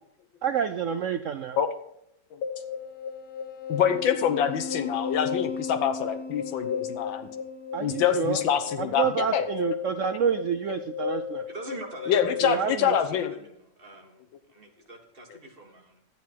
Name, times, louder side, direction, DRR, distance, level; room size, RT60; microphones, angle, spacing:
voice 1, 0.4-1.6 7.7-8.4 8.8-11.5 12.4-13.0, right 8 dB, 85° right, 9 dB, 0.6 m, -28 dB
sound 1, 2.4-12.5, left 7 dB, 55° left, 1.4 m, -34 dB
voice 2, 3.7-7.3 7.8-9.4 12.1-13.3, left 9 dB, 85° left, 9 dB, 1.8 m, -25 dB
voice 3, 11.5-12.3 12.6-13.1 13.4-13.5 13.8-14.2 14.5-16.0, right 1 dB, 30° right, 1 dB, 1.8 m, -43 dB
12.0 x 9.4 x 4.5 m, 0.76 s
omnidirectional pair, 2.0 m